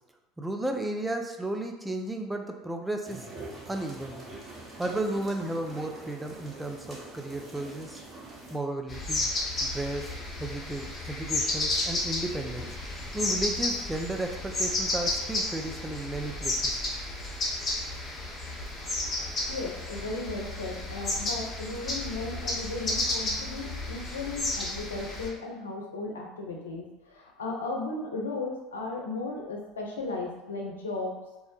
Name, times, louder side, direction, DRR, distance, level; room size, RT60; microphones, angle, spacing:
voice 1, 0.4-3.3 3.7-4.2 4.8-8.0 8.5-9.3 9.6-12.7 13.1-16.8, right 1 dB, 10° right, 4 dB, 0.3 m, -34 dB
sound 1, 3.0-8.6, right 2 dB, 30° right, 1.0 m, -44 dB
sound 2, 8.9-25.3, left 2 dB, 30° left, 0.8 m, -32 dB
voice 2, 19.1-31.1, left 3 dB, 85° left, 0 dB, 0.4 m, -36 dB
2.3 x 2.0 x 2.9 m, 1.1 s
hypercardioid pair, 75°, 0 cm